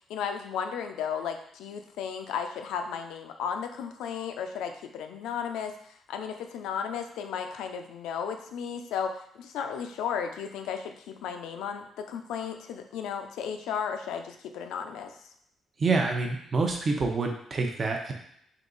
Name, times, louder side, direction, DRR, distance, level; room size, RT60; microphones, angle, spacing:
voice 1, 0.1-15.3, left 7 dB, 90° left, 6 dB, 0.4 m, -34 dB
voice 2, 15.8-18.1, right 3 dB, 40° right, 2 dB, 0.7 m, -27 dB
3.7 x 2.8 x 3.8 m, 0.69 s
cardioid pair, 90°, 0 cm